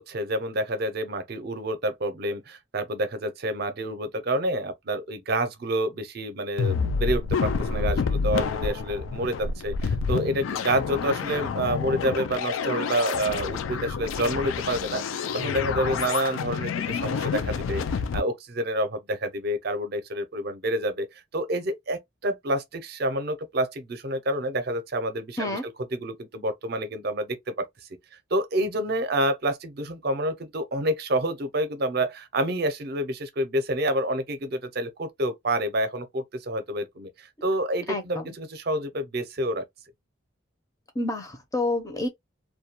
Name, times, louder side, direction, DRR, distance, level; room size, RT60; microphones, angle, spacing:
voice 1, 0.0-21.1 21.3-25.6 25.9-27.7 28.3-39.6, right 1 dB, 50° right, 0.5 m, -28 dB
sound 1, 6.6-18.2, left 5 dB, 85° left, 0.3 m, -28 dB
voice 2, 37.9-38.2 41.0-42.1, left 2 dB, 15° left, 0.5 m, -28 dB
2.2 x 2.2 x 2.8 m
head